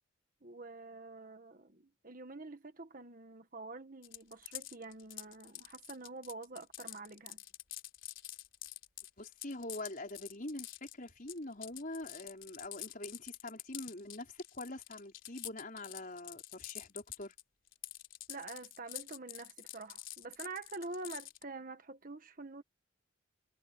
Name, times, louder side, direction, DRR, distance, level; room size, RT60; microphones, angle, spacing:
voice 1, 0.4-7.4 18.3-22.6, right 3 dB, 45° right, 1.5 m, -47 dB
sound 1, 4.0-17.4 17.7-21.4, left 15 dB, 70° left, 3.7 m, -47 dB
voice 2, 9.2-17.3, left 2 dB, 40° left, 5.1 m, -44 dB
head